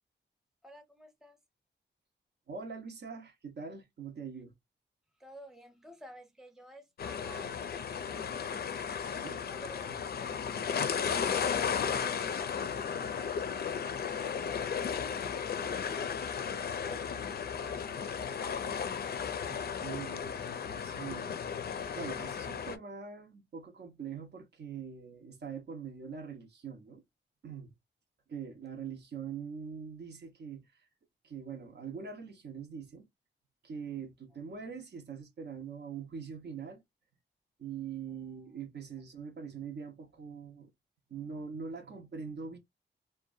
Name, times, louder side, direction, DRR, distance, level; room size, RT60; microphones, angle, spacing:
voice 1, 0.6-1.4 5.2-8.7 9.5-16.1 16.8-17.2 17.6-18.7, equal, ahead, 0.7 m, -53 dB
voice 2, 2.5-4.5 9.0-9.4 19.5-21.3 21.9-27.0 27.4-27.7 28.3-30.9 31.2-33.1 33.6-36.8 37.6-40.7 41.1-42.6, right 6 dB, 60° right, 0.6 m, -43 dB
sound 1, 7.0-22.8, left 7 dB, 55° left, 0.4 m, -35 dB
2.6 x 2.2 x 2.4 m
cardioid pair, 90°, 19 cm